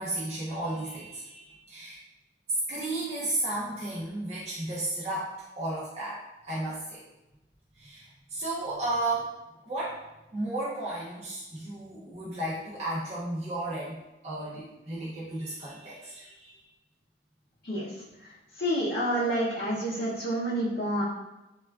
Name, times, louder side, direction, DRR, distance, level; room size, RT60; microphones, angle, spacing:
voice 1, 0.0-2.0 2.7-7.0 7.8-9.3 9.7-10.0 10.3-16.6, right 2 dB, 35° right, -8 dB, 0.5 m, -34 dB
voice 2, 18.6-21.0, right 1 dB, 65° left, -8 dB, 0.5 m, -28 dB
3.3 x 2.3 x 2.2 m, 0.99 s
head